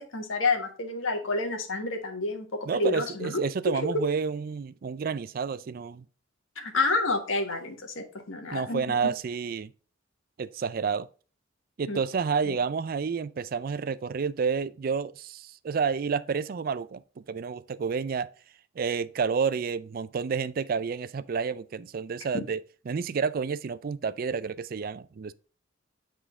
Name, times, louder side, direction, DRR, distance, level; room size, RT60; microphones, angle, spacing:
voice 1, 0.0-3.4 3.9-4.0 6.5-8.9 11.9-12.0 12.5-12.6 22.3-22.4, left 3 dB, 80° left, 1.3 m, -29 dB
voice 2, 2.7-6.0 8.5-9.7 10.4-11.1 11.8-18.3 18.8-22.6 22.9-25.3, right 5 dB, 45° right, 0.4 m, -30 dB
8.1 x 3.8 x 3.6 m
head